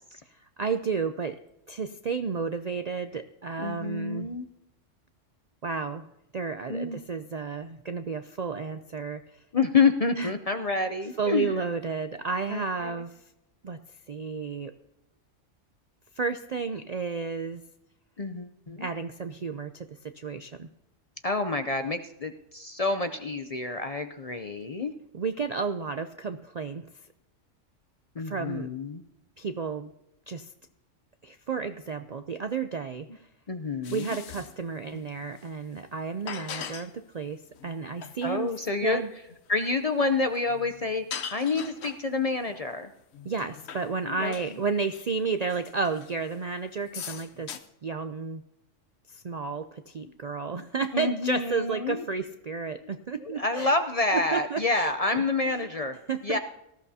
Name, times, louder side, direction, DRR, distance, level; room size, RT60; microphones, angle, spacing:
voice 1, 0.3-1.4 1.7-4.3 5.6-6.1 6.3-9.4 10.2-10.3 11.2-13.2 13.6-13.8 14.1-14.7 16.2-17.6 18.8-20.7 25.1-26.9 28.2-28.7 29.4-29.9 30.3-30.5 31.2-33.3 33.9-38.5 38.8-39.1 43.2-47.5 47.8-48.4 49.1-53.7 54.1-55.5 56.1-56.4, right 5 dB, 55° right, 9 dB, 0.4 m, -32 dB
voice 2, 3.6-4.5 6.7-7.0 9.5-11.6 12.5-13.0 18.2-18.9 21.2-24.9 28.2-29.0 33.5-34.2 38.2-39.0 39.5-41.1 41.3-42.9 44.1-44.3 50.9-52.1 52.8-52.9 53.2-56.0 56.2-56.4, left 3 dB, 40° left, 8 dB, 0.5 m, -28 dB
sound 1, 33.8-34.5 34.8-35.7 36.3-36.9 37.6-38.4 38.8-38.9 39.3-39.4 39.6-39.8 40.3-42.0 42.5-42.6 43.1-43.9 44.2-44.6 44.9-45.1 45.5-46.5 46.8-47.6, left 7 dB, 60° left, 1.0 m, -41 dB
19.0 x 14.0 x 2.8 m, 0.86 s
omnidirectional pair, 1.3 m